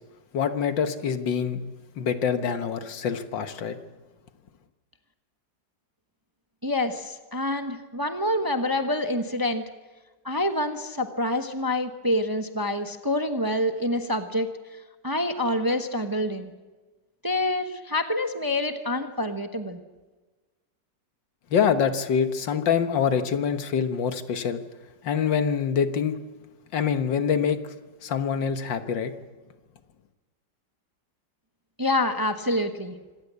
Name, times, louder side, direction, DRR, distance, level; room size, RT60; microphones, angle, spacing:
voice 1, 0.3-1.6 2.0-3.8 21.5-24.6 25.0-26.2 26.7-27.6 28.0-29.1, left 7 dB, 85° left, 9 dB, 2.0 m, -25 dB
voice 2, 6.6-9.6 10.2-14.5 15.0-16.5 17.2-19.8 31.8-33.0, left 1 dB, 15° right, 7 dB, 0.9 m, -27 dB
26.0 x 15.0 x 8.3 m, 1.2 s
omnidirectional pair, 1.9 m